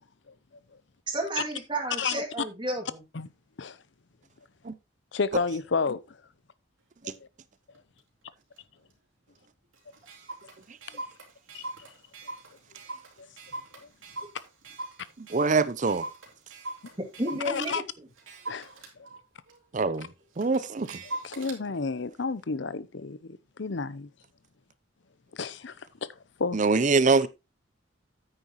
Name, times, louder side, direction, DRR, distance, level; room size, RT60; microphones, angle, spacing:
voice 1, 1.1-3.0 17.2-17.8, right 1 dB, 25° right, 2.5 m, -31 dB
voice 2, 5.1-6.2 7.0-7.2 10.9-11.0 11.5-11.7 13.2-13.3 13.8-13.9 17.5-17.8 18.5-18.7 21.0-24.1 25.3-26.1 26.4-26.6, left 4 dB, 60° left, 0.6 m, -31 dB
Clock, 7.1-7.2 7.7-8.0 8.6-8.7 8.9-9.0 9.4-9.5 9.7-17.7 18.2-21.6, right 2 dB, 90° right, 3.1 m, -42 dB
voice 3, 15.2-16.0 19.7-20.1 20.4-21.0 26.5-27.3, right 4 dB, 40° right, 0.6 m, -24 dB
9.5 x 8.9 x 3.0 m
head